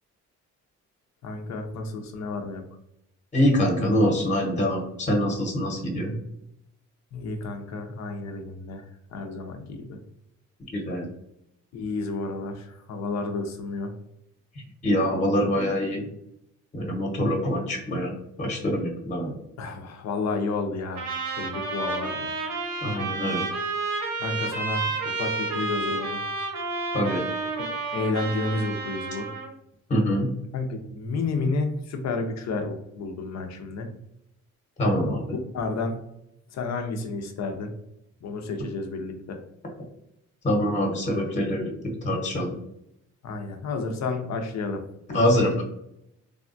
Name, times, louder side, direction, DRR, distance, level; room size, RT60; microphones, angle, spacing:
voice 1, 1.2-2.6 7.1-10.0 11.7-13.9 19.6-21.1 21.3-22.3 24.2-26.2 27.6-29.3 30.5-33.9 35.3-36.0 36.5-37.7 38.2-39.4 43.2-44.8 45.1-45.5, left 3 dB, 60° left, 5 dB, 0.6 m, -31 dB
voice 2, 3.3-6.2 10.7-11.1 14.8-16.1 16.7-19.3 22.8-23.4 26.9-27.2 29.9-30.3 34.8-35.3 40.4-42.5 45.1-45.6, equal, 25° left, 0 dB, 0.9 m, -24 dB
Trumpet, 21.0-29.5, right 3 dB, 75° right, 0.9 m, -30 dB
3.4 x 2.3 x 2.5 m, 0.80 s
cardioid pair, 90°, 30 cm